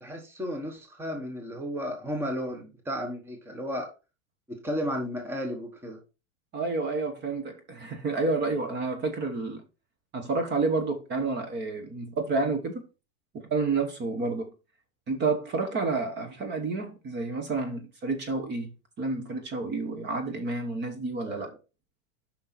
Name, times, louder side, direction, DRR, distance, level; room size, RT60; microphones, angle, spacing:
voice 1, 0.0-3.9 4.5-6.0 21.2-21.5, equal, 5° right, 1.2 m, -33 dB
voice 2, 6.5-9.6 10.1-12.8 13.3-14.5 15.1-18.7 19.0-21.5, right 3 dB, 25° right, 1.3 m, -29 dB
6.4 x 5.7 x 4.4 m
supercardioid pair, 145°, 39 cm